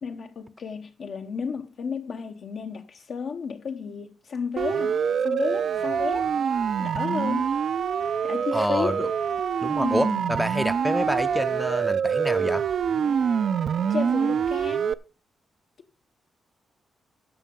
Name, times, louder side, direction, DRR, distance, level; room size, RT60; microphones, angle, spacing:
voice 1, 0.0-6.3 6.8-7.6 8.2-9.1 9.8-10.3 13.9-14.8, left 5 dB, 60° left, 0.9 m, -32 dB
Siren, 4.6-14.9, right 7 dB, 60° right, 0.5 m, -25 dB
voice 2, 8.5-9.1 9.6-12.7, equal, 5° left, 0.6 m, -27 dB
14.5 x 5.6 x 5.3 m
cardioid pair, 105°, 0 cm